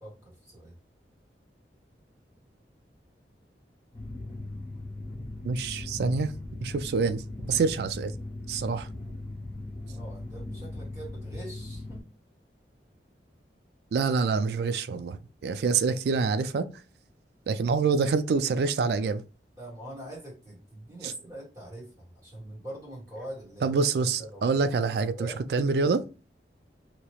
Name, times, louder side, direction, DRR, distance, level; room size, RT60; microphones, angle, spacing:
voice 1, 0.0-0.8 9.8-12.0 19.6-23.7 24.2-25.5, right 1 dB, 20° right, 1.3 m, -43 dB
sound 1, 3.9-12.0, left 2 dB, 35° left, 1.0 m, -39 dB
voice 2, 5.4-6.3 6.6-7.2 7.5-8.1 8.5-8.9 13.9-16.6 17.5-19.2 23.6-25.1 25.5-26.0, right 4 dB, 65° right, 0.3 m, -26 dB
2.9 x 2.3 x 3.0 m
head